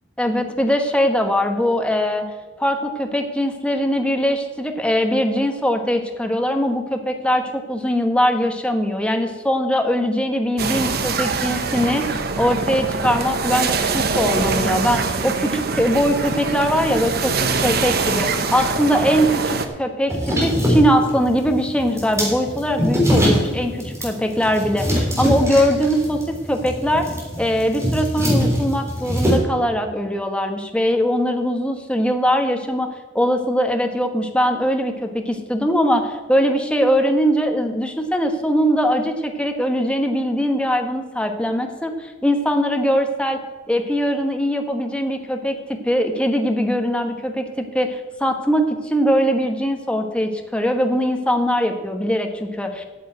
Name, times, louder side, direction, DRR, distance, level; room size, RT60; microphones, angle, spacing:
voice 1, 0.2-2.2 2.6-17.3 17.6-20.1 20.4-27.1 27.4-43.4 43.7-45.6 45.8-52.8, equal, 5° left, 4 dB, 1.1 m, -21 dB
sound 1, 10.6-19.7, right 4 dB, 55° right, 1.0 m, -23 dB
sound 2, 20.1-29.4, equal, 15° right, 3.5 m, -22 dB
9.1 x 7.2 x 8.3 m, 1.4 s
head